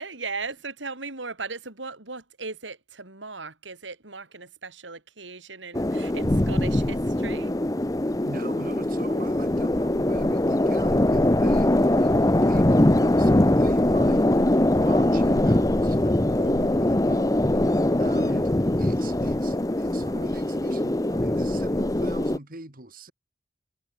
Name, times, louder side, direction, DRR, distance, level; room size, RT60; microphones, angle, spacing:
voice 1, 0.0-7.5 18.0-18.4, right 4 dB, 85° right, 4.8 m, -37 dB
sound 1, 5.7-22.4, left 1 dB, 20° left, 0.8 m, -22 dB
voice 2, 8.2-14.2 14.6-18.5 18.8-23.1, right 2 dB, 50° right, 3.1 m, -42 dB
head